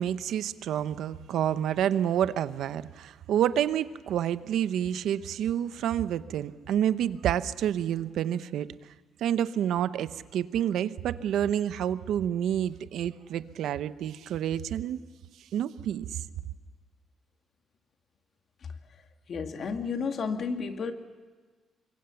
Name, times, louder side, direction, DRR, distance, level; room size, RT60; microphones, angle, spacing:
voice 1, 0.0-8.7 9.2-15.0 15.5-16.2, right 10 dB, 80° right, 0.9 m, -28 dB
voice 2, 19.3-20.9, left 5 dB, 55° left, 2.3 m, -32 dB
25.5 x 22.0 x 7.1 m
cardioid pair, 90°, 0 cm